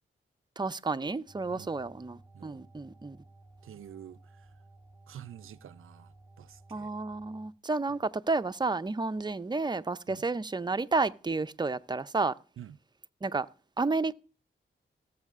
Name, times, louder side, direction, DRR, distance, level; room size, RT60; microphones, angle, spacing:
voice 1, 0.6-3.2 6.7-12.4 13.2-13.5 13.8-14.1, right 3 dB, 20° right, 0.5 m, -31 dB
sound 1, 1.3-7.5, right 2 dB, ahead, 1.0 m, -56 dB
voice 2, 2.3-2.7 3.6-4.5 5.1-6.9 10.1-10.2 12.6-12.8, right 10 dB, 75° right, 0.5 m, -48 dB
18.5 x 7.4 x 2.5 m
cardioid pair, 50°, 21 cm